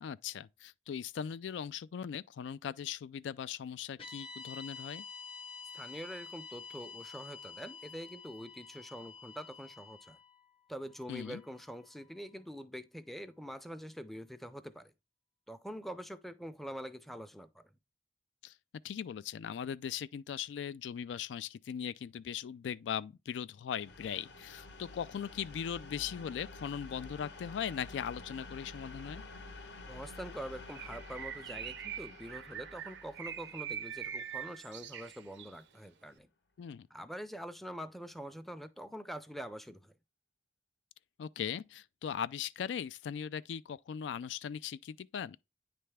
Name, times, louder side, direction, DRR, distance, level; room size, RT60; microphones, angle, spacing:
voice 1, 0.0-5.0 11.1-11.4 18.4-18.6 18.8-29.2 36.6-36.9 41.2-45.4, left 8 dB, 90° left, 0.3 m, -39 dB
sound 1, 4.0-12.3, left 5 dB, 30° left, 0.7 m, -49 dB
voice 2, 5.7-10.2 10.7-14.9 15.5-17.6 29.9-36.3 36.9-39.9, equal, ahead, 0.4 m, -45 dB
sound 2, 23.8-35.4, left 3 dB, 70° left, 0.8 m, -50 dB
Bird, 30.7-35.6, right 9 dB, 75° right, 0.5 m, -43 dB
9.3 x 3.4 x 3.3 m
head